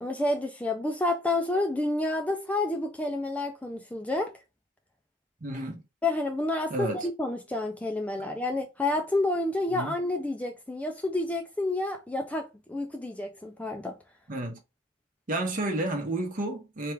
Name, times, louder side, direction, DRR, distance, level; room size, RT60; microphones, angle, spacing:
voice 1, 0.0-4.3 6.0-13.9, left 2 dB, 5° left, 0.3 m, -29 dB
voice 2, 5.4-5.8 6.7-7.1 9.7-9.9 14.3-14.6 15.3-16.9, right 2 dB, 40° right, 0.9 m, -31 dB
3.4 x 2.4 x 4.5 m
head